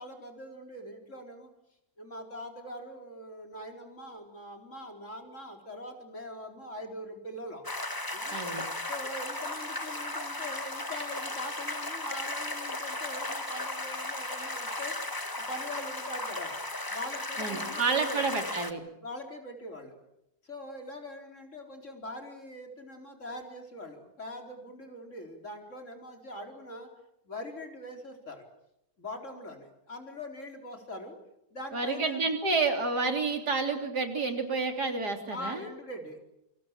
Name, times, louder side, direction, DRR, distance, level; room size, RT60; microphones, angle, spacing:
voice 1, 0.0-1.5 2.0-7.6 8.1-8.4 8.9-15.0 15.4-16.6 16.9-18.3 19.0-20.0 20.4-26.9 27.2-28.4 29.0-31.2 31.5-32.2 35.3-36.2, left 1 dB, 50° left, 4 dB, 4.6 m, -42 dB
sound 1, 7.6-18.7, left 1 dB, 15° left, 1.6 m, -36 dB
voice 2, 8.3-8.6 17.4-18.8 31.7-35.7, right 4 dB, 80° right, 5 dB, 4.1 m, -29 dB
28.5 x 25.5 x 7.4 m, 0.82 s
omnidirectional pair, 1.7 m